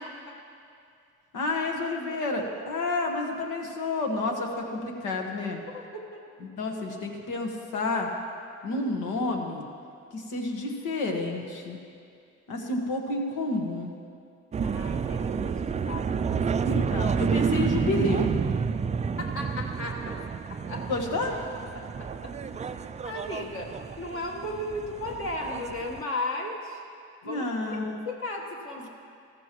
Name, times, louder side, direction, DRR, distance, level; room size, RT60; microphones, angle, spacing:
voice 1, 1.3-5.6 6.4-8.1 8.6-9.7 10.1-11.8 12.5-13.9 16.6-18.3 20.9-21.4 27.2-28.0, left 2 dB, 85° left, 2 dB, 1.5 m, -30 dB
voice 2, 5.7-6.2 8.7-8.8 14.6-16.8 19.2-20.2 20.5-20.9 21.7-26.8 27.2-27.5 27.9-28.9, left 1 dB, 45° left, -1 dB, 1.4 m, -36 dB
sound 1, 14.5-26.0, right 6 dB, 25° right, 0.3 m, -29 dB
14.5 x 14.0 x 3.1 m, 2.4 s
cardioid pair, 90°, 30 cm